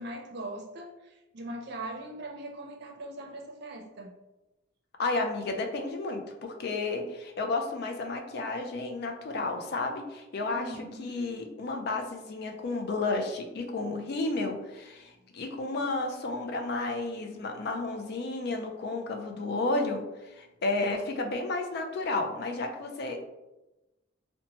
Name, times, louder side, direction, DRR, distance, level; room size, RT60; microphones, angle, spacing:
voice 1, 0.0-4.1 10.5-11.2 15.1-15.4, right 1 dB, 55° right, 0 dB, 0.5 m, -41 dB
voice 2, 5.0-10.7 11.0-20.0 20.3-23.2, left 3 dB, 55° left, 4 dB, 0.4 m, -32 dB
2.8 x 2.1 x 2.9 m, 1.0 s
head